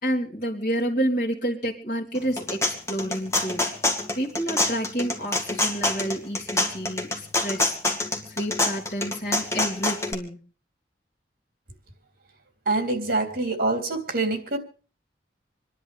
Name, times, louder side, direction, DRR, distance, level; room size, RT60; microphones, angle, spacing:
voice 1, 0.0-3.7 4.1-10.4, equal, 45° left, 3.0 m, -29 dB
sound 1, 2.1-10.1, left 2 dB, 15° left, 2.2 m, -26 dB
voice 2, 12.6-14.6, right 2 dB, 55° right, 3.4 m, -25 dB
27.5 x 11.0 x 3.5 m
head